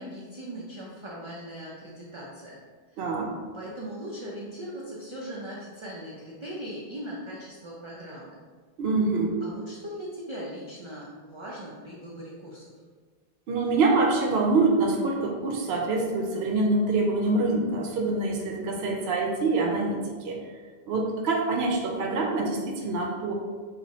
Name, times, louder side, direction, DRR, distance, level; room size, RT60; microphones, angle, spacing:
voice 1, 0.0-2.6 2.9-3.0 3.5-8.4 9.4-12.7, equal, 45° right, -5 dB, 0.4 m, -39 dB
voice 2, 3.0-3.4 8.8-9.4 13.5-20.4 20.9-23.3, right 3 dB, 80° right, 1 dB, 0.8 m, -25 dB
2.7 x 2.4 x 4.1 m, 1.5 s
omnidirectional pair, 1.1 m